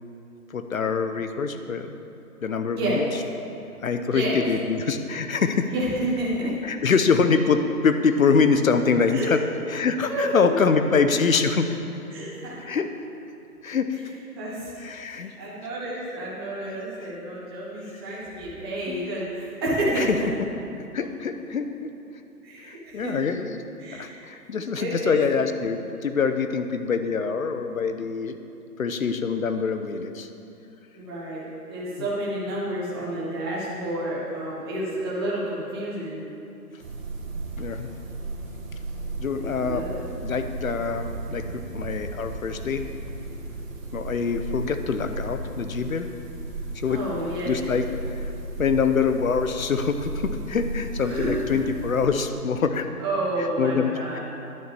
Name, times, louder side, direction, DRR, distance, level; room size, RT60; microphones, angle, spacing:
voice 1, 0.5-1.9 2.4-3.1 3.8-5.7 6.6-9.4 9.7-11.8 12.6-12.9 13.6-14.0 14.8-15.3 16.7-17.1 17.9-18.0 18.9-19.1 20.0-20.2 20.9-21.9 22.6-23.6 23.9-28.4 28.8-30.3 32.0-32.1 37.6-37.9 39.2-39.9 40.2-42.9 43.9-46.1 46.7-47.0 47.4-48.3 48.6-52.9 53.4-54.2, left 5 dB, 60° left, 8 dB, 1.0 m, -25 dB
voice 2, 2.7-3.0 4.0-4.4 5.7-6.5 9.1-9.3 10.1-10.6 12.1-12.5 14.3-14.7 15.1-20.1 22.4-23.1 23.8-24.1 24.8-25.2 30.9-36.2 39.3-40.0 46.9-47.5 51.0-51.6 53.0-54.2, right 1 dB, 15° right, -7 dB, 1.3 m, -30 dB
sound 1, 36.8-52.1, right 2 dB, 55° right, 2.3 m, -35 dB
10.5 x 7.1 x 6.9 m, 2.8 s
hypercardioid pair, 165°, 47 cm